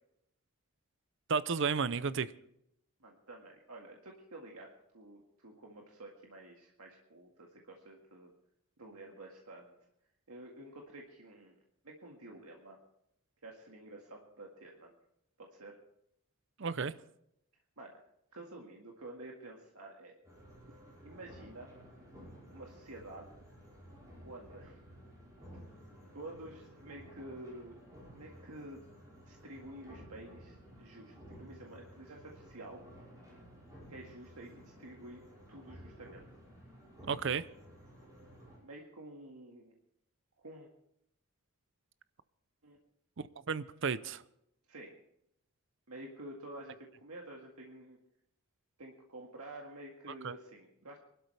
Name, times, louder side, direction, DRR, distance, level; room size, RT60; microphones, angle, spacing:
voice 1, 1.3-2.3 16.6-16.9 37.1-37.4 43.5-44.2 50.2-50.3, right 5 dB, 55° right, 0.6 m, -32 dB
voice 2, 3.0-8.3 8.8-9.7 10.3-11.6 11.8-12.8 13.4-14.9 15.4-15.8 17.8-18.0 18.3-20.2 21.0-21.7 22.5-23.4 24.2-24.8 26.1-27.8 28.1-28.8 29.2-32.8 33.9-36.3 38.6-39.7 40.4-40.7 42.6-42.8 44.7-45.0 45.9-48.0 48.8-51.0, right 1 dB, 80° right, 1.9 m, -50 dB
sound 1, 20.2-38.6, equal, 15° right, 5.6 m, -54 dB
23.5 x 12.5 x 3.4 m
head